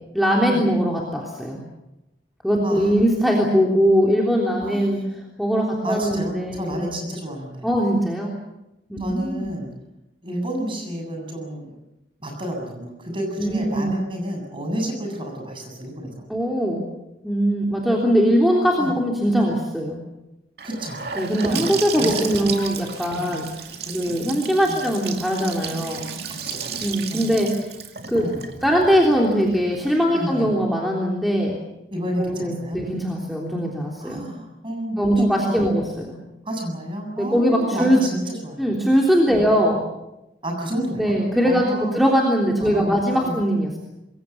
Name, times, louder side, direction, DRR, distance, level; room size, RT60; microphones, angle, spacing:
voice 1, 0.1-1.6 2.4-7.0 7.6-8.3 8.9-9.5 13.4-14.0 16.3-16.8 17.2-20.0 21.1-26.1 26.8-27.5 28.1-28.3 28.6-31.6 32.2-34.3 35.0-36.2 37.2-38.0 38.6-39.9 41.0-43.8, equal, ahead, -2 dB, 3.4 m, -21 dB
voice 2, 2.6-3.0 4.7-5.1 5.8-7.7 9.0-9.7 10.2-11.7 12.2-16.1 18.8-18.9 20.6-21.0 21.4-21.7 22.0-22.5 23.1-23.3 23.8-24.3 24.7-24.8 26.3-27.4 28.2-28.4 30.1-30.5 31.9-32.8 34.0-35.7 36.5-38.6 39.3-39.5 40.4-41.1 41.4-42.0 42.6-43.4, right 1 dB, 30° right, 2 dB, 7.6 m, -30 dB
Gurgling / Sink (filling or washing) / Bathtub (filling or washing), 20.6-30.4, right 7 dB, 60° right, 2.5 m, -34 dB
27.0 x 22.0 x 7.2 m, 0.93 s
head